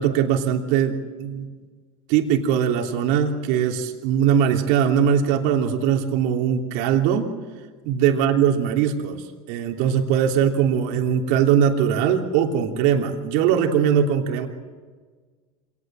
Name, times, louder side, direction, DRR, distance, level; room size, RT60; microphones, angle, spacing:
voice 1, 0.0-1.5 2.1-7.3 7.8-14.5, right 8 dB, 65° right, 2 dB, 3.1 m, -21 dB
26.5 x 19.0 x 7.7 m, 1.4 s
hypercardioid pair, 100°, 18 cm